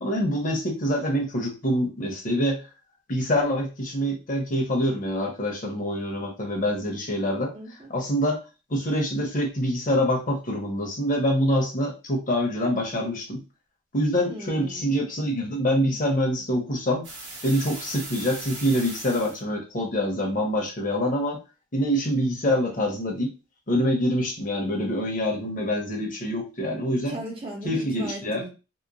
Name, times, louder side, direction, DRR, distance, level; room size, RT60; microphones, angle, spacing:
voice 1, 0.0-2.6 3.1-7.5 7.9-8.4 8.7-13.4 13.9-17.1 17.4-21.4 21.7-23.3 23.7-27.2 27.6-28.4, equal, 40° left, 0 dB, 0.9 m, -25 dB
voice 2, 7.5-7.9 14.3-15.0 27.1-28.5, right 1 dB, 30° right, 0 dB, 0.6 m, -37 dB
sound 1, 17.0-19.4, right 2 dB, 65° right, 1.2 m, -38 dB
2.9 x 2.1 x 2.5 m, 0.29 s
head